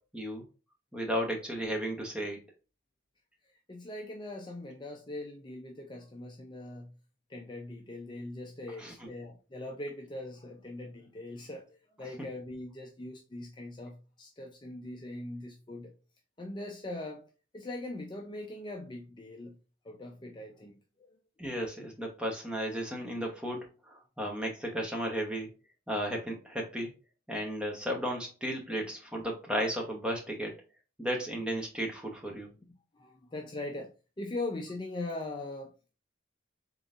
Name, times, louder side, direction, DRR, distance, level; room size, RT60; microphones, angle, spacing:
voice 1, 0.1-0.4 0.9-2.4 8.8-8.9 21.4-25.5 25.9-26.9 27.3-30.5 31.0-32.5, equal, 5° right, 0.9 m, -34 dB
voice 2, 3.4-7.0 7.3-15.9 16.4-19.6 19.8-21.2 28.7-28.8 32.9-36.0, left 2 dB, 25° left, 0.5 m, -41 dB
3.8 x 3.8 x 2.4 m
head